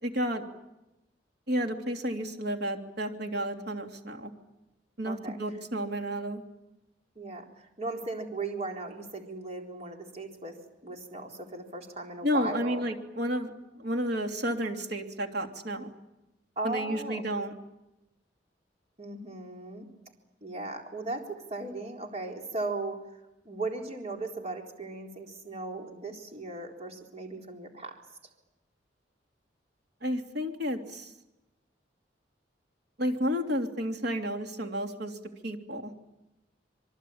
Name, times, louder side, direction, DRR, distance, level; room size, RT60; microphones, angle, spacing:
voice 1, 0.0-0.4 1.5-4.3 5.0-6.4 12.2-15.9 16.6-17.5 30.0-31.1 33.0-35.2 35.4-35.9, equal, 65° right, 4 dB, 3.1 m, -31 dB
voice 2, 5.1-5.4 7.2-10.6 10.8-12.9 16.6-17.2 19.0-19.9 20.4-23.0 23.4-28.0, right 2 dB, 40° right, 2 dB, 4.1 m, -37 dB
26.5 x 23.5 x 8.8 m, 0.95 s
head